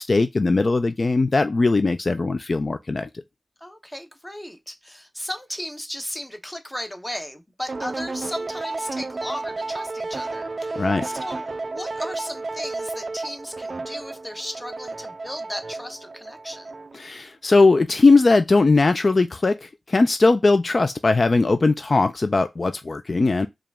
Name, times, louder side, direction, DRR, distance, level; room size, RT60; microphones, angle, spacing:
voice 1, 0.0-3.1 10.8-11.1 16.9-23.5, left 3 dB, 50° left, 0.3 m, -19 dB
voice 2, 3.6-16.7, equal, 10° left, 0.9 m, -36 dB
sound 1, 7.7-17.1, right 3 dB, 50° right, 0.3 m, -32 dB
4.8 x 2.4 x 3.4 m
wide cardioid pair, 70°, 0 cm